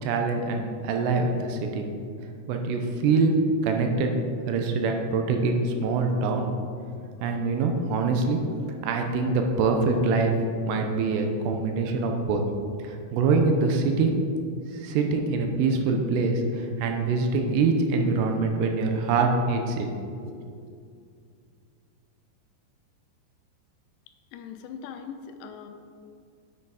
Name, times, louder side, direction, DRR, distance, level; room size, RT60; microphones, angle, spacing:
voice 1, 0.0-1.8 2.5-3.4 3.6-4.2 4.5-6.5 7.2-8.4 8.7-10.3 10.6-12.4 12.8-14.2 14.7-19.9 20.2-20.3, right 4 dB, 85° right, 4 dB, 2.8 m, -24 dB
voice 2, 24.3-25.7, left 7 dB, 85° left, 6 dB, 2.9 m, -40 dB
9.7 x 8.5 x 3.9 m, 2.3 s
omnidirectional pair, 5.1 m